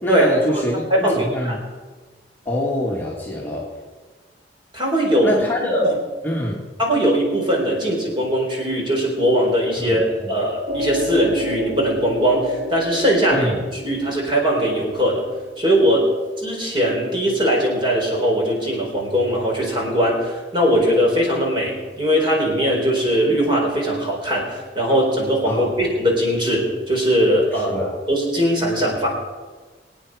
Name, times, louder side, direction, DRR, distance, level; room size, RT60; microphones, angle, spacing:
voice 1, 0.0-1.6 2.5-3.7 5.2-5.9 6.2-6.7 9.8-10.3 13.3-13.6 25.5-25.8 27.5-28.0, left 1 dB, 10° left, -4 dB, 1.7 m, -24 dB
voice 2, 0.9-1.6 4.7-5.3 5.8-5.9 6.8-13.5 13.8-15.2 15.6-16.1 16.4-29.1, equal, 30° right, -1 dB, 4.0 m, -20 dB
sound 1, 10.7-15.9, right 1 dB, 50° right, 2.6 m, -30 dB
24.0 x 9.1 x 4.8 m, 1.4 s
head